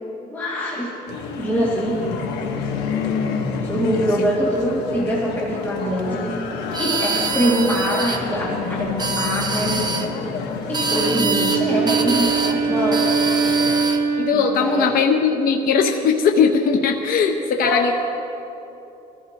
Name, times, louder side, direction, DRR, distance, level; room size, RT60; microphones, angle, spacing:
voice 1, 0.3-0.9 1.4-2.0 3.6-6.4 6.8-9.8 10.7-13.1 14.3-14.9 17.6-17.9, equal, 10° left, -7 dB, 2.4 m, -23 dB
sound 1, 1.1-13.9, left 5 dB, 90° left, 1.5 m, -29 dB
sound 2, 6.7-8.2 8.9-10.1 10.7-11.6 11.9-12.6 12.9-14.0, right 4 dB, 25° right, 1.1 m, -25 dB
Wind instrument woodwind instrument, 10.7-15.3, right 5 dB, 75° right, 1.6 m, -23 dB
voice 2, 14.2-18.0, left 6 dB, 60° left, 4 dB, 0.9 m, -19 dB
22.5 x 14.5 x 3.0 m, 2.9 s
cardioid pair, 110°, 17 cm